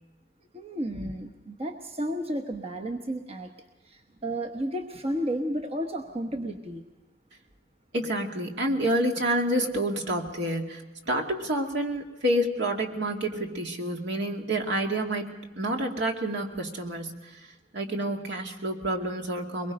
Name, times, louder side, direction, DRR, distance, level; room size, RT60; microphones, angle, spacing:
voice 1, 0.5-3.5 3.8-6.8, right 1 dB, 30° right, 3 dB, 1.0 m, -32 dB
voice 2, 7.9-15.3 15.6-17.1 17.7-19.7, right 1 dB, 60° right, 2 dB, 2.3 m, -28 dB
23.0 x 21.5 x 5.2 m, 1.1 s
head